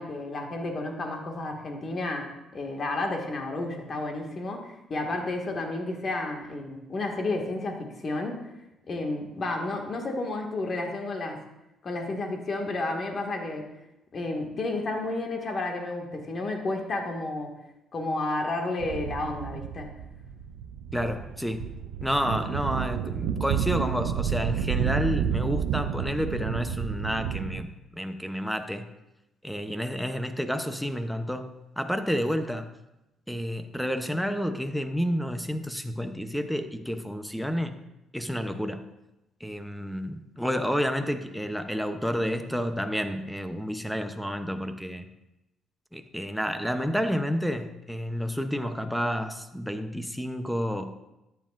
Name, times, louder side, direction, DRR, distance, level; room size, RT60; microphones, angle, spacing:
voice 1, 0.0-8.3 8.9-11.4 11.8-13.6 14.1-17.5 17.9-19.9, left 2 dB, 45° left, 2 dB, 2.0 m, -31 dB
sound 1, 18.8-27.6, right 8 dB, 90° right, 0.5 m, -30 dB
voice 2, 20.9-21.7 22.0-28.9 29.4-32.7 33.3-37.8 38.1-38.8 39.4-45.1 45.9-50.9, equal, ahead, 8 dB, 0.9 m, -30 dB
13.5 x 9.3 x 2.6 m, 0.92 s
cardioid pair, 80°, 0 cm